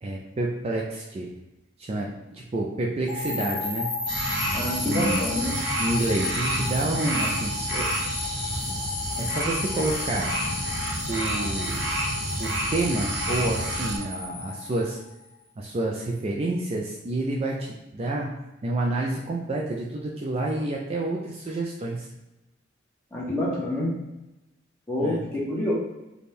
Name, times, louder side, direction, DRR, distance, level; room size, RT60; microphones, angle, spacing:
voice 1, 0.0-1.3 1.8-3.9 4.8-5.3 5.8-7.8 9.2-10.3 11.1-11.8 12.4-15.0 15.6-18.3 18.6-22.1 25.0-25.2, right 2 dB, 30° right, -2 dB, 0.3 m, -29 dB
sound 1, 3.1-15.3, left 3 dB, 30° left, 1.5 m, -33 dB
sound 2, 4.1-14.0, right 1 dB, 65° right, 0.8 m, -30 dB
voice 2, 4.5-5.6 23.1-23.9 24.9-25.7, left 1 dB, 10° left, -6 dB, 1.0 m, -27 dB
4.1 x 2.2 x 3.3 m, 0.97 s
head